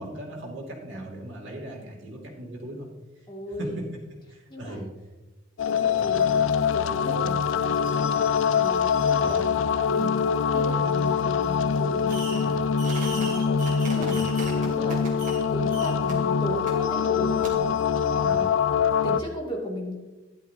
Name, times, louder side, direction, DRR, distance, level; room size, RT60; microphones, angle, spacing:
voice 1, 0.0-2.9 3.6-3.7 4.3-4.8 9.2-9.4 13.9-14.3 18.0-18.5, right 1 dB, 65° right, -2 dB, 2.8 m, -38 dB
voice 2, 3.3-3.8 4.5-4.9 5.6-8.1 8.5-9.5 9.9-12.7 13.1-14.2 14.5-15.1 15.5-17.8 19.0-19.9, equal, 25° left, -2 dB, 2.4 m, -36 dB
sound 1, 5.6-19.2, left 6 dB, 80° left, 0.4 m, -24 dB
Fireworks, 12.1-12.5 12.8-15.4 15.7-16.1 16.7-16.8 17.4-17.5, right 3 dB, 40° right, 2.4 m, -38 dB
12.5 x 11.0 x 2.9 m, 1.1 s
head